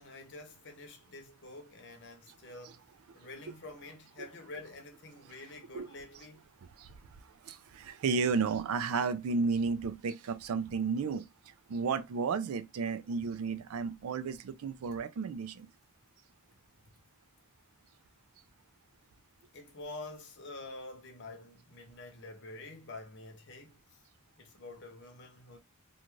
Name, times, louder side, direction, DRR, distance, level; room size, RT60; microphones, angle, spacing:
voice 1, 0.0-2.8 3.1-6.4 19.5-23.8 24.4-25.6, left 2 dB, 55° left, 0.7 m, -47 dB
voice 2, 2.3-2.7 4.2-4.3 5.3-5.4 5.7-5.9 6.6-15.7, right 5 dB, 75° right, 0.4 m, -33 dB
2.5 x 2.3 x 3.0 m
head